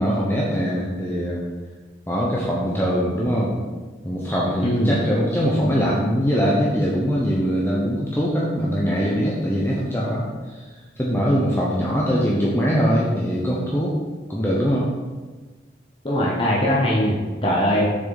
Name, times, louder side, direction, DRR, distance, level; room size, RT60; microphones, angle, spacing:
voice 1, 0.0-1.4 2.1-3.6 4.0-10.7 11.0-14.0 14.3-14.9, equal, 10° left, -5 dB, 0.9 m, -22 dB
voice 2, 4.6-4.9 16.0-17.9, equal, 30° left, -4 dB, 1.1 m, -20 dB
7.3 x 6.5 x 4.1 m, 1.4 s
head